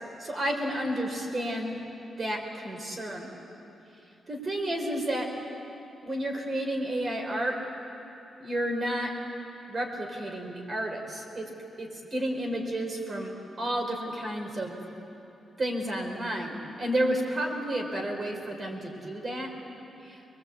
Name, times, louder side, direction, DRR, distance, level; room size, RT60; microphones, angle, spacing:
voice 1, 0.2-1.8 2.2-3.3 4.3-5.3 6.0-7.5 8.4-9.1 9.7-11.5 11.8-13.3 13.6-14.8 15.6-19.5 20.0-20.2, right 1 dB, 35° right, 2 dB, 4.4 m, -31 dB
23.5 x 22.0 x 8.3 m, 2.9 s
cardioid pair, 115°, 0 cm